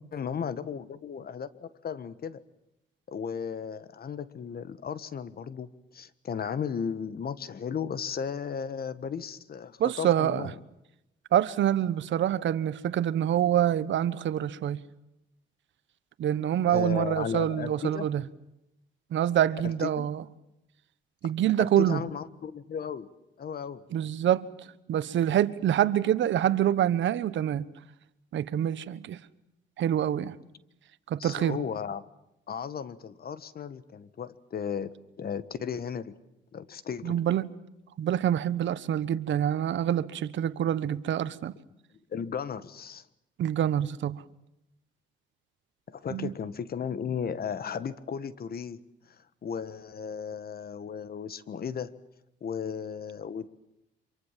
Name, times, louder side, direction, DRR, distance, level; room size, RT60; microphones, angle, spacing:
voice 1, 0.1-2.4 3.1-10.5 16.7-18.1 19.6-20.1 21.6-23.1 23.4-23.8 31.2-32.0 32.5-34.9 35.2-36.1 36.5-37.1 42.1-43.1 45.9-48.8 49.1-51.9 52.4-53.5, left 7 dB, 50° left, 1.5 m, -35 dB
voice 2, 9.8-10.5 11.3-14.8 16.2-18.2 19.1-20.2 21.2-22.0 23.9-24.5 24.9-27.7 28.3-29.2 29.8-30.4 31.1-31.6 37.0-37.5 38.0-41.6 43.4-44.2 46.1-46.3, right 11 dB, 70° right, 1.3 m, -26 dB
26.0 x 23.5 x 7.5 m
cardioid pair, 90°, 20 cm